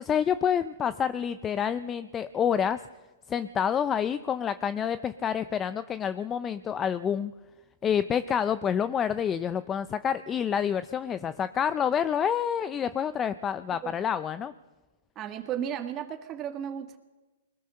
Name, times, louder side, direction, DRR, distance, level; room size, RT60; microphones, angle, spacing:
voice 1, 0.0-2.8 3.3-7.3 7.8-14.5, left 8 dB, 20° left, 14 dB, 0.6 m, -28 dB
voice 2, 15.2-17.0, right 9 dB, 30° right, 4 dB, 2.0 m, -34 dB
22.0 x 20.5 x 6.6 m, 1.2 s
hypercardioid pair, 135°, 0 cm